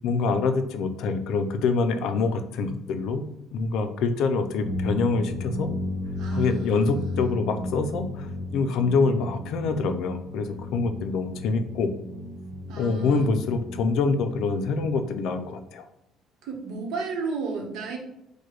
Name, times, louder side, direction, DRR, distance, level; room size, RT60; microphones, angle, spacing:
voice 1, 0.0-3.3 3.5-5.7 6.3-11.9 12.8-15.8, left 4 dB, 60° left, 8 dB, 0.5 m, -25 dB
sound 1, 4.6-15.3, left 1 dB, 35° right, 1.3 m, -34 dB
voice 2, 6.2-7.3 12.7-13.3 16.4-18.0, right 4 dB, 60° right, 1 dB, 1.0 m, -33 dB
4.7 x 2.2 x 4.6 m, 0.85 s
cardioid pair, 175°, 0 cm